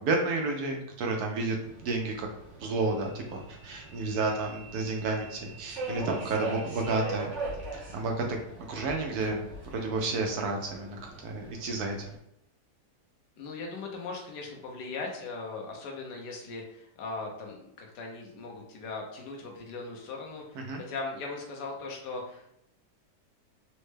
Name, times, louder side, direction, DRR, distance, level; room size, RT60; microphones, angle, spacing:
voice 1, 0.0-1.6 1.8-2.3 2.6-7.3 7.9-8.4 8.7-9.4 9.7-12.1 20.7-20.8, right 3 dB, 75° right, 1 dB, 1.1 m, -31 dB
Subway metro underground, 1.6-12.1, right 3 dB, 45° right, 1.5 m, -41 dB
voice 2, 4.1-4.4 13.4-22.5, left 3 dB, 85° left, 0 dB, 1.3 m, -39 dB
4.1 x 2.1 x 3.2 m, 0.78 s
omnidirectional pair, 1.8 m